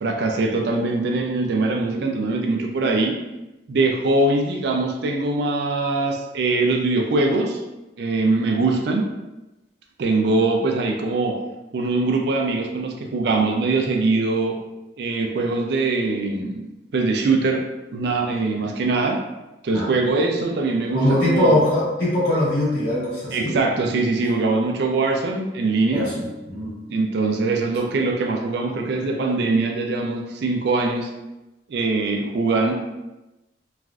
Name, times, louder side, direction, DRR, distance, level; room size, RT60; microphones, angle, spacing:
voice 1, 0.0-3.2 3.7-7.6 8.0-9.1 10.0-11.4 11.7-14.6 15.0-17.6 17.9-19.2 19.6-21.6 23.3-26.1 26.9-31.1 31.7-32.7, right 3 dB, 65° right, 2 dB, 0.4 m, -22 dB
voice 2, 20.9-23.6 25.9-26.7, left 1 dB, 65° left, -9 dB, 1.4 m, -21 dB
3.1 x 2.5 x 2.3 m, 1.0 s
head